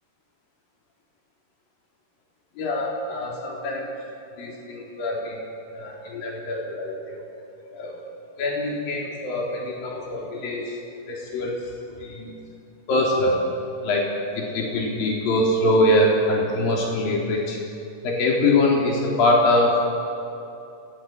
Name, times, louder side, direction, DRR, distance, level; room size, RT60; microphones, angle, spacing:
voice 1, 2.6-3.9 4.4-5.4 5.7-7.2 7.7-7.9 8.4-10.8 11.1-11.6 12.0-12.3 12.9-13.4 13.8-14.1 14.4-17.6 18.0-19.8, left 1 dB, 65° left, -2 dB, 5.3 m, -23 dB
29.0 x 21.5 x 9.0 m, 2.8 s
omnidirectional pair, 4.5 m